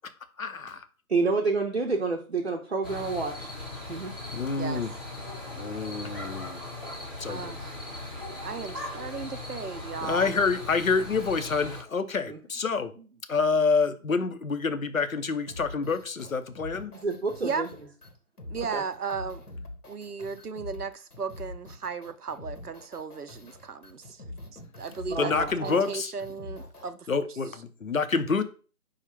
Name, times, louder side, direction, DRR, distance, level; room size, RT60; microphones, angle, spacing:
voice 1, 0.4-0.8 4.3-4.9 5.6-6.6 7.2-7.5 10.0-12.9 13.3-16.9 25.2-26.1 27.1-28.4, left 4 dB, 65° left, 0.7 m, -27 dB
voice 2, 1.1-3.5 3.9-4.1 12.3-12.4 17.0-17.7 18.7-18.8 25.1-25.8, right 4 dB, 50° right, 0.6 m, -28 dB
sound 1, 2.8-11.8, left 2 dB, 15° left, 0.9 m, -39 dB
voice 3, 7.2-7.7 8.4-10.3 17.4-17.6 18.5-19.4 19.9-24.2 24.5-25.3 25.6-27.2, right 5 dB, 85° right, 0.7 m, -35 dB
sound 2, 15.5-26.9, left 1 dB, 90° left, 1.2 m, -44 dB
5.0 x 2.4 x 4.3 m
figure-of-eight pair, 155°, 44 cm